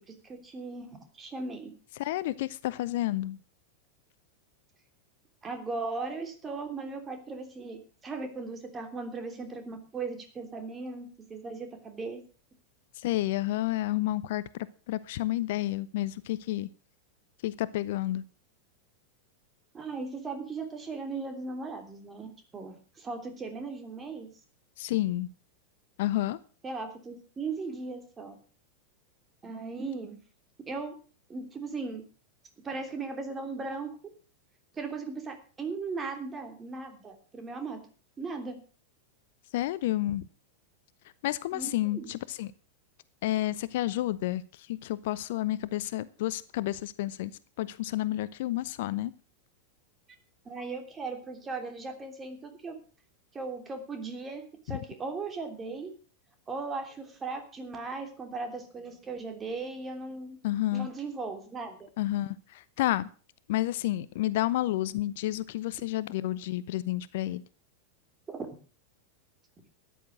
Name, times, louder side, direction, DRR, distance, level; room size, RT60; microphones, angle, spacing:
voice 1, 0.0-1.7 5.4-12.2 19.7-24.3 26.6-28.4 29.4-30.2 30.7-30.9 31.3-32.0 32.6-33.9 34.7-37.8 38.2-38.6 41.5-42.1 50.4-52.8 53.3-55.9 56.5-60.4 60.7-61.9 68.3-68.5, right 4 dB, 20° right, 6 dB, 3.1 m, -37 dB
voice 2, 2.0-3.4 12.9-16.7 17.4-18.2 24.8-25.3 26.0-26.4 39.5-40.3 41.2-42.5 43.2-47.3 47.6-49.1 54.7-54.8 60.4-60.9 62.0-63.1 63.5-67.4, left 15 dB, 55° left, 18 dB, 0.6 m, -30 dB
13.5 x 10.0 x 6.3 m, 0.38 s
figure-of-eight pair, 90°, 0 cm